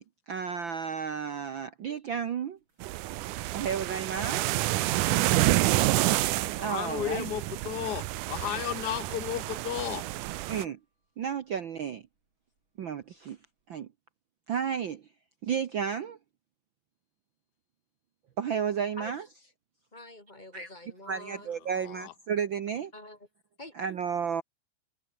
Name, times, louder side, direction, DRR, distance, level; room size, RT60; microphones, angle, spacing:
voice 1, 0.0-2.6 3.5-4.5 6.6-7.3 10.5-10.8 11.2-12.0 12.8-13.4 13.7-13.9 14.5-15.0 15.4-16.2 18.4-19.2 20.5-20.7 21.1-22.9 23.7-24.4, right 7 dB, 70° right, 1.1 m, -32 dB
sound 1, 2.6-2.8 3.2-3.3 3.5-3.6 4.2-4.5 4.7-4.8 5.8-11.0 11.7-12.2 12.6-12.9 13.2-13.3, right 3 dB, 35° right, 6.8 m, -52 dB
sound 2, 2.8-10.6, right 17 dB, 85° right, 2.3 m, -28 dB
voice 2, 6.6-10.1 21.8-22.1, left 12 dB, 75° left, 0.9 m, -34 dB
voice 3, 19.9-21.5 22.9-23.3 23.6-23.8, left 1 dB, 15° left, 3.2 m, -46 dB
omnidirectional pair, 3.6 m